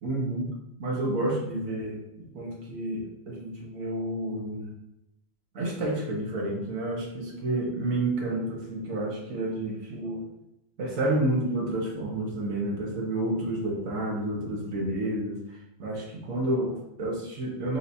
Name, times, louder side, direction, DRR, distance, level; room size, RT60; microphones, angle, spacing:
voice 1, 0.0-4.7 5.5-10.3 10.8-17.8, right 1 dB, 70° right, -2 dB, 1.5 m, -30 dB
5.8 x 2.8 x 2.7 m, 0.89 s
omnidirectional pair, 1.5 m